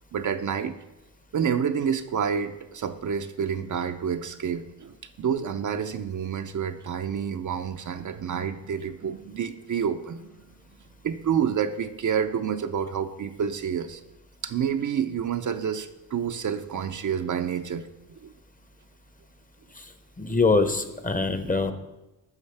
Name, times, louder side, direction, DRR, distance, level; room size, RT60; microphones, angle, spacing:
voice 1, 0.1-0.8 1.3-10.3 11.0-14.0 14.4-17.9 18.2-18.3 20.3-20.4, right 7 dB, 45° right, 8 dB, 0.6 m, -28 dB
voice 2, 20.2-21.7, left 3 dB, 20° left, 9 dB, 0.8 m, -24 dB
13.0 x 6.4 x 3.4 m, 0.99 s
cardioid pair, 80°, 43 cm